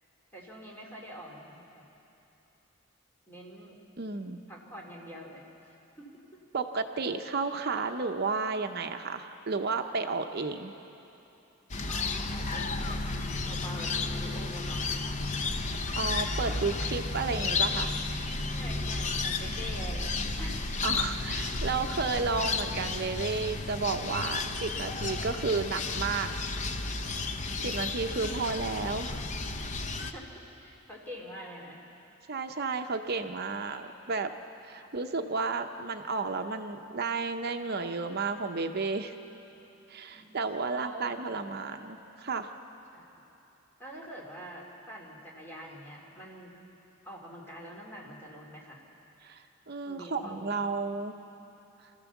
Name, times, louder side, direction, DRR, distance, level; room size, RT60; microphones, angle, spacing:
voice 1, 0.3-1.8 3.3-3.8 4.5-5.5 6.0-6.1 11.9-13.0 13.4-15.3 18.5-20.8 28.1-28.5 30.0-31.8 34.8-34.9 40.1-40.4 40.7-41.1 42.9-43.2 43.8-46.7 47.0-48.8 49.8-50.7, equal, 10° left, -3 dB, 3.1 m, -45 dB
voice 2, 4.0-4.4 6.5-10.7 16.0-18.0 20.8-26.3 26.9-27.0 27.6-29.2 32.3-34.3 34.6-39.1 39.9-42.5 49.2-51.2, right 4 dB, 50° right, 6 dB, 0.7 m, -32 dB
sound 1, 11.7-30.1, left 3 dB, 35° left, 0.8 m, -32 dB
26.0 x 14.5 x 7.2 m, 3.0 s
head